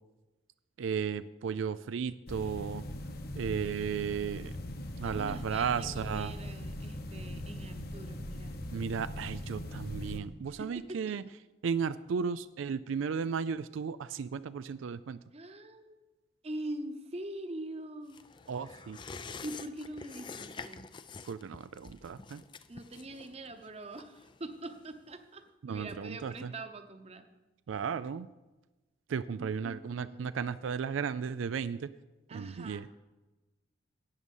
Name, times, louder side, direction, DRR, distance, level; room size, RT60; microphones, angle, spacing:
voice 1, 0.8-2.8 3.3-4.5 5.0-6.3 8.7-11.2 11.6-15.2 18.5-19.0 21.3-22.4 25.6-26.5 27.7-28.3 29.1-31.9 32.3-32.9, right 6 dB, 85° right, 14 dB, 0.4 m, -34 dB
sound 1, 2.3-10.2, left 1 dB, 50° left, 1.0 m, -40 dB
voice 2, 5.0-8.5 10.6-11.1 15.3-16.0 16.4-18.2 19.4-20.8 22.7-25.4 25.7-27.3 29.3-30.5 32.3-32.9, right 1 dB, 30° right, 7 dB, 0.9 m, -43 dB
sound 2, 18.1-25.2 25.5-25.6, left 4 dB, 25° left, 0.4 m, -47 dB
12.5 x 8.8 x 5.4 m, 1.1 s
head